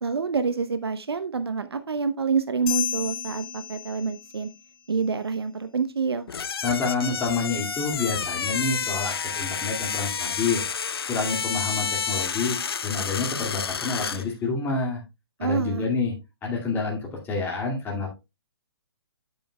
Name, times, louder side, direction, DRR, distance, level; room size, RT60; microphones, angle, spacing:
voice 1, 0.0-4.5 4.9-6.3 15.4-15.9, right 5 dB, 75° right, 11 dB, 0.8 m, -27 dB
sound 1, 2.7-4.5, left 9 dB, 40° left, 2.9 m, -32 dB
sound 2, 6.3-14.3, left 6 dB, 70° left, 0.7 m, -30 dB
voice 2, 6.6-10.6 11.1-12.6 12.8-15.0 15.4-16.1 16.4-18.1, left 4 dB, 15° left, -2 dB, 2.2 m, -28 dB
10.5 x 7.9 x 2.2 m, 0.24 s
figure-of-eight pair, 130°, 13 cm